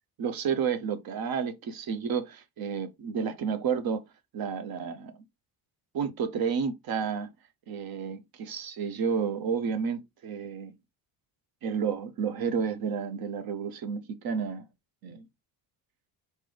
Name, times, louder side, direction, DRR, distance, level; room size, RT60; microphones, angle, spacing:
voice 1, 0.2-4.0 4.3-5.1 5.9-7.3 7.7-10.7 11.6-14.6 15.0-15.2, right 6 dB, 55° right, 0.8 m, -31 dB
4.1 x 3.8 x 3.2 m
cardioid pair, 140°, 43 cm